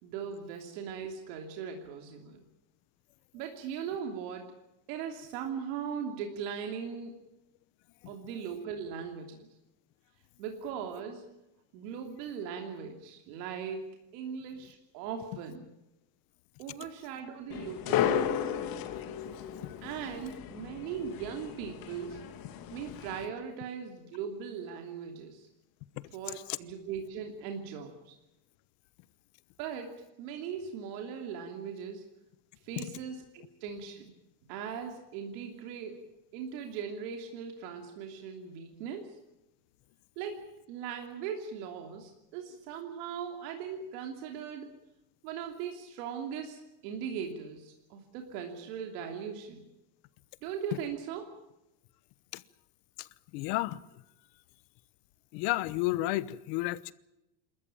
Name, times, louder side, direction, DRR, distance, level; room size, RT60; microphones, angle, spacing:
voice 1, 0.0-2.4 3.3-4.5 4.9-7.2 8.1-9.5 10.4-11.3 11.7-15.7 16.6-18.4 19.8-22.3 22.7-25.5 26.1-28.2 29.6-32.0 32.6-34.1 34.5-39.2 40.2-44.7 45.2-49.6 50.4-51.2, right 7 dB, 85° right, 3.1 m, -39 dB
sound 1, 17.5-23.2, left 9 dB, 45° left, 2.4 m, -34 dB
voice 2, 53.3-53.8 55.3-56.9, left 18 dB, 75° left, 1.2 m, -32 dB
28.0 x 14.0 x 8.9 m
cardioid pair, 155°, 48 cm